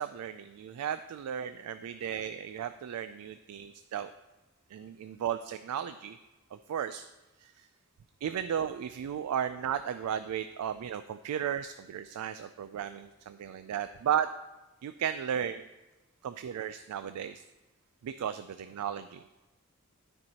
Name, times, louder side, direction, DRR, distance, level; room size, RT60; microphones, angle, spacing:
voice 1, 0.0-4.1 4.7-6.2 6.5-7.1 7.4-7.7 8.2-14.3 14.8-15.7 16.2-17.4 18.0-19.2, right 9 dB, 80° right, 11 dB, 0.3 m, -35 dB
12.5 x 4.5 x 2.9 m, 1.1 s
head